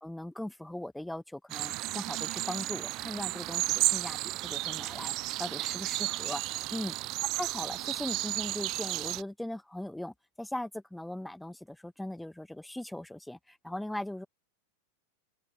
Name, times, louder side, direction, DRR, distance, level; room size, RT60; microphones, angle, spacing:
voice 1, 0.0-6.4 6.7-6.9 7.3-14.3, left 1 dB, 5° left, 1.0 m, -39 dB
sound 1, 1.5-9.2, right 20 dB, 40° right, 0.5 m, -33 dB
figure-of-eight pair, 90°, 0 cm